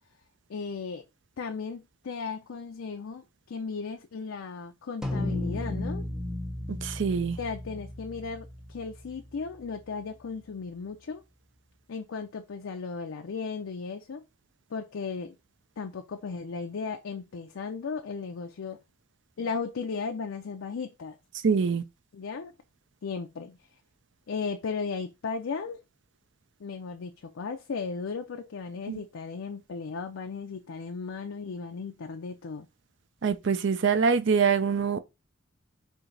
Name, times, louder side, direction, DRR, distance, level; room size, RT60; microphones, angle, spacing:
voice 1, 0.5-1.0 1.4-6.0 7.4-11.2 11.9-14.2 14.7-15.3 15.8-18.8 19.4-21.2 22.1-22.5 23.0-23.6 24.3-25.8 26.6-32.7, left 5 dB, 75° left, 0.5 m, -36 dB
sound 1, 5.0-9.6, left 1 dB, 5° right, 0.7 m, -34 dB
voice 2, 6.7-7.4 21.4-21.8 28.9-29.0 33.2-35.0, right 5 dB, 60° right, 0.5 m, -24 dB
4.5 x 2.8 x 3.8 m
head